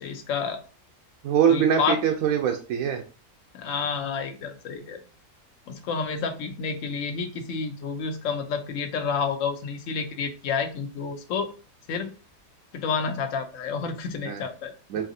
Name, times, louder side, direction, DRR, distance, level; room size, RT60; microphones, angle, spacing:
voice 1, 0.0-0.6 1.5-2.0 3.5-5.0 5.7-11.5 11.9-12.1 12.7-14.7, left 5 dB, 65° left, 6 dB, 1.0 m, -29 dB
voice 2, 1.2-3.0 14.3-14.4 14.9-15.0, right 8 dB, 75° right, 2 dB, 1.0 m, -23 dB
5.7 x 2.6 x 2.7 m, 0.34 s
omnidirectional pair, 1.6 m